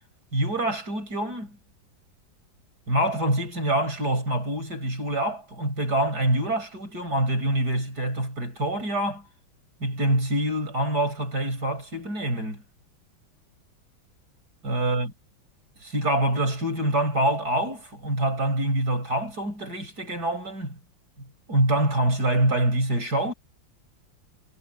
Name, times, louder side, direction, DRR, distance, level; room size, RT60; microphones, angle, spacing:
voice 1, 0.3-1.6 2.9-9.2 9.8-12.6 14.6-15.1 15.8-20.8 21.5-23.3, right 1 dB, 50° right, 7.6 m, -25 dB
omnidirectional pair, 2.2 m